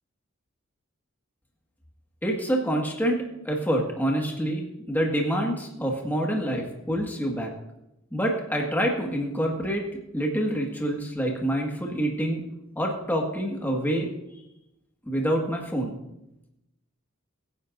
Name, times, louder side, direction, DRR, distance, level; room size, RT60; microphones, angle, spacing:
voice 1, 2.2-7.5 8.1-9.8 10.1-12.4 12.8-14.1 15.1-15.9, equal, 10° left, -1 dB, 1.8 m, -27 dB
23.0 x 9.9 x 2.7 m, 0.88 s
head